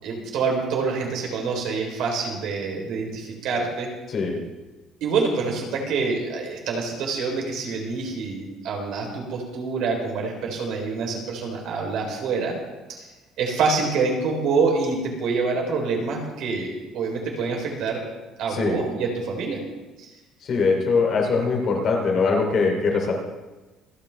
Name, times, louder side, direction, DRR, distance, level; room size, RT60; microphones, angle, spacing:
voice 1, 0.0-3.9 5.0-12.6 12.9-13.1 13.4-18.0 18.4-19.6 20.0-20.1, right 4 dB, 65° right, 1 dB, 3.6 m, -26 dB
voice 2, 4.1-4.4 18.5-18.8 20.4-23.1, left 4 dB, 40° left, 1 dB, 3.0 m, -22 dB
26.5 x 9.1 x 3.4 m, 1.2 s
cardioid pair, 165°, 0 cm